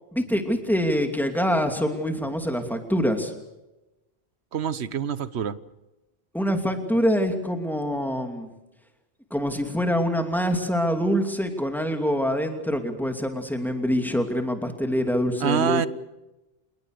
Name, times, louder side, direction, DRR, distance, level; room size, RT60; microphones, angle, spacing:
voice 1, 0.1-3.3 6.3-8.5 9.3-15.9, equal, ahead, 5 dB, 2.8 m, -25 dB
voice 2, 4.5-5.6 15.4-15.9, right 7 dB, 90° right, 16 dB, 1.2 m, -25 dB
27.0 x 20.5 x 6.7 m, 1.0 s
omnidirectional pair, 1.1 m